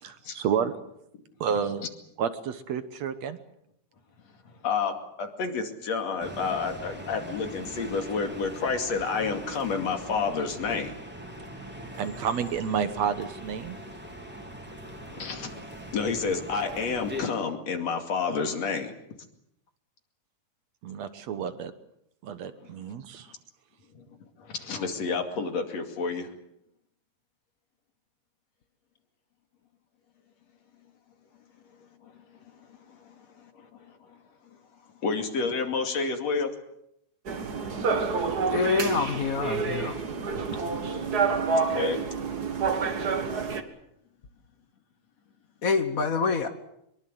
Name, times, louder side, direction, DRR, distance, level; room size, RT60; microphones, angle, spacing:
voice 1, 0.0-0.8 1.4-1.9 2.2-3.4 12.0-13.8 20.8-21.7 22.2-23.3, right 7 dB, 65° right, 11 dB, 2.2 m, -30 dB
voice 2, 4.6-10.9 15.0-15.5 15.9-18.9 24.0-24.1 24.4-26.3 32.9-33.2 33.6-33.7 35.0-36.5 40.5-42.0, left 5 dB, 55° left, 5 dB, 3.5 m, -30 dB
sound 1, 6.2-17.2, equal, 5° right, 3.2 m, -41 dB
sound 2, 37.3-43.6, right 4 dB, 40° right, 1.8 m, -28 dB
voice 3, 38.5-40.0 45.6-46.5, left 4 dB, 90° left, 9 dB, 0.7 m, -26 dB
23.5 x 22.5 x 7.9 m, 0.79 s
omnidirectional pair, 3.6 m